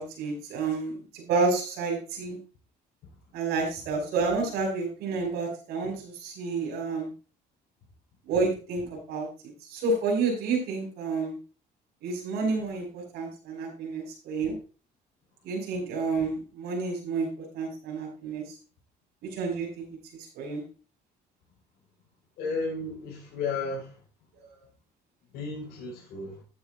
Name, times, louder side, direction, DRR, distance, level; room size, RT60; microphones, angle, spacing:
voice 1, 0.0-2.4 3.3-7.1 8.3-9.3 9.6-11.4 12.0-14.5 15.4-18.5 19.2-19.9 20.1-20.6 24.5-24.6, right 4 dB, 90° right, 0 dB, 5.9 m, -30 dB
voice 2, 22.4-24.0 25.3-26.4, left 3 dB, 80° left, -6 dB, 5.2 m, -33 dB
15.0 x 9.0 x 2.6 m, 0.36 s
cardioid pair, 110°, 17 cm